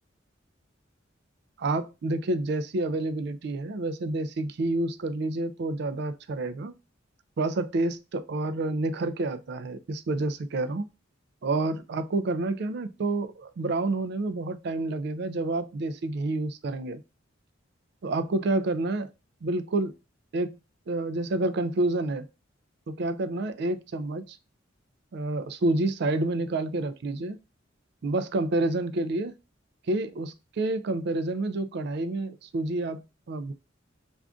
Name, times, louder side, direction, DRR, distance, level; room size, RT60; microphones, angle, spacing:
voice 1, 1.6-6.7 7.4-10.8 11.4-17.0 18.0-19.1 19.4-19.9 20.3-20.6 20.9-22.3 22.9-24.4 25.1-27.4 28.0-29.3 29.9-33.5, right 2 dB, 60° right, 0.4 m, -29 dB
2.5 x 2.4 x 3.4 m
head